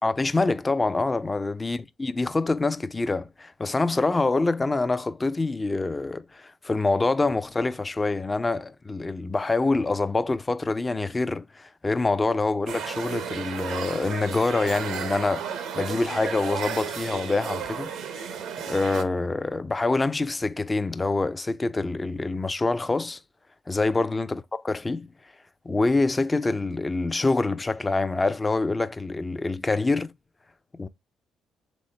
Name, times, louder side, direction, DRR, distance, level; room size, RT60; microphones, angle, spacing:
voice 1, 0.0-17.9 18.2-18.3 18.7-23.2 23.7-25.1 25.7-30.1 30.8-30.9, left 3 dB, 20° left, 0.4 m, -26 dB
sound 1, 12.7-19.0, right 7 dB, 85° right, 0.7 m, -33 dB
4.1 x 3.6 x 3.2 m
cardioid pair, 90°, 0 cm